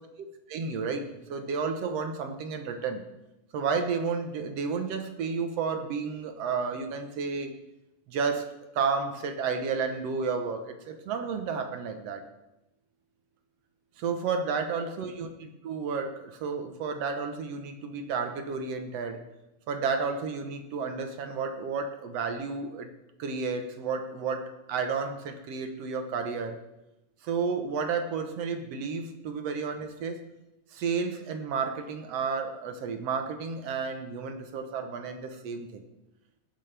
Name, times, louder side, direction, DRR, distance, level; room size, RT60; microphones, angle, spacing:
voice 1, 0.2-3.0 3.5-7.5 8.1-8.5 8.8-12.2 14.0-19.2 19.7-22.9 23.2-26.6 27.2-30.2 30.7-35.9, right 5 dB, 65° right, 6 dB, 1.8 m, -32 dB
18.0 x 11.0 x 3.4 m, 0.92 s
omnidirectional pair, 3.8 m